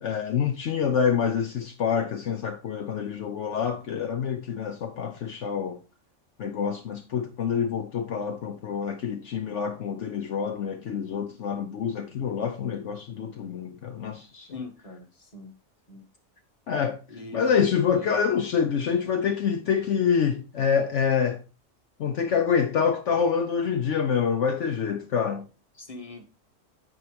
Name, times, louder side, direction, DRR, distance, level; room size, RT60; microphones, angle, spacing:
voice 1, 0.0-5.8 6.4-14.5 16.7-17.0 17.3-21.4 22.0-25.4, left 7 dB, 65° left, 1.0 m, -26 dB
voice 2, 14.5-15.5 15.9-16.0 17.1-17.7 17.9-18.2 25.8-26.2, left 2 dB, 25° left, 1.5 m, -41 dB
9.7 x 4.6 x 5.1 m
omnidirectional pair, 1.4 m